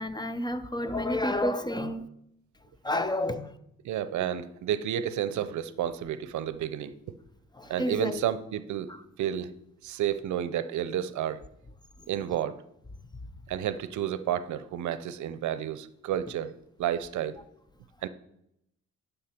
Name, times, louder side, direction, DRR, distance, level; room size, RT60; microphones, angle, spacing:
voice 1, 0.0-2.1 2.8-3.5 7.6-8.2, left 1 dB, 15° left, 0.6 m, -30 dB
voice 2, 3.8-6.9 7.7-8.9 9.2-9.5 9.8-11.4 12.1-12.6 13.5-16.5 16.8-17.4 18.0-18.1, right 10 dB, 70° right, 0.6 m, -31 dB
11.5 x 5.6 x 4.4 m
cardioid pair, 90°, 30 cm